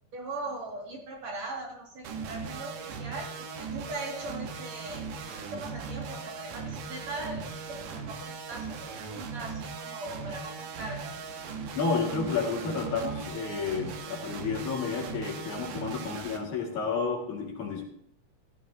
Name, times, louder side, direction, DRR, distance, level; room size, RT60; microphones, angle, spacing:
voice 1, 0.1-5.1 5.5-11.1, right 2 dB, 55° right, -1 dB, 3.3 m, -40 dB
sound 1, 2.0-16.4, right 5 dB, 80° right, 2.8 m, -39 dB
voice 2, 11.8-17.8, left 5 dB, 65° left, -1 dB, 3.5 m, -31 dB
14.5 x 14.0 x 2.8 m, 0.70 s
omnidirectional pair, 3.7 m